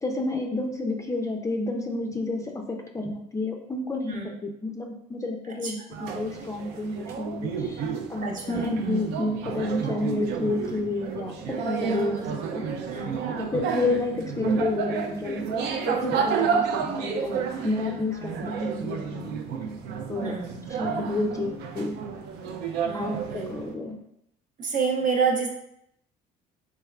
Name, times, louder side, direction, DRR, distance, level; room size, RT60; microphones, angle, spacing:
voice 1, 0.0-7.8 8.1-12.3 12.5-12.7 13.4-19.4 20.1-20.3 20.7-21.9 22.9-24.0, left 2 dB, 20° left, 2 dB, 0.4 m, -30 dB
sound 1, 5.9-23.7, right 6 dB, 80° right, 0.4 m, -31 dB
voice 2, 8.2-8.6 11.8-12.2 12.9-13.4 20.2-20.6 22.8-23.2 24.6-25.5, right 5 dB, 50° right, 0 dB, 0.7 m, -28 dB
3.4 x 3.2 x 2.3 m, 0.74 s
cardioid pair, 110°, 17 cm